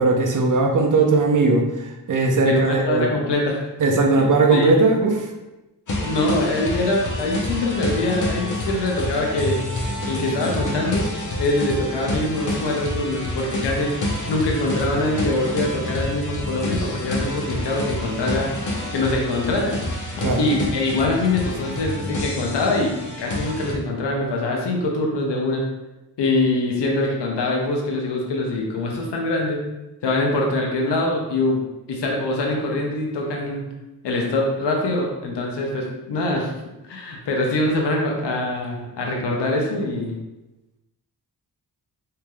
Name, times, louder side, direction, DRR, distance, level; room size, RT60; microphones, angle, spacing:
voice 1, 0.0-3.1 3.8-5.1 20.2-20.5, right 3 dB, 50° right, 2 dB, 0.6 m, -18 dB
voice 2, 2.4-3.7 4.2-4.8 6.0-9.6 10.1-11.1 11.4-14.0 14.3-18.5 18.9-19.8 20.4-25.7 26.2-29.6 30.0-33.7 34.0-36.5 36.9-40.2, left 2 dB, 85° left, 0 dB, 0.6 m, -23 dB
sound 1, 5.9-23.8, left 1 dB, 45° left, 0.7 m, -28 dB
3.2 x 2.7 x 2.2 m, 1.0 s
cardioid pair, 50°, 41 cm